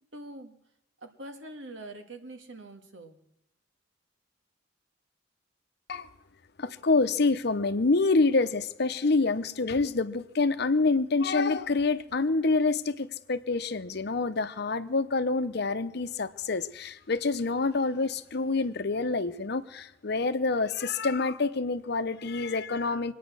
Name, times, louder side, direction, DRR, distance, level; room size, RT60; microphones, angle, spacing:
voice 1, 0.1-0.6 1.0-3.2, right 1 dB, 80° right, 7 dB, 1.8 m, -44 dB
voice 2, 6.6-23.1, left 3 dB, 60° left, 11 dB, 0.8 m, -27 dB
24.0 x 9.3 x 6.2 m, 0.84 s
head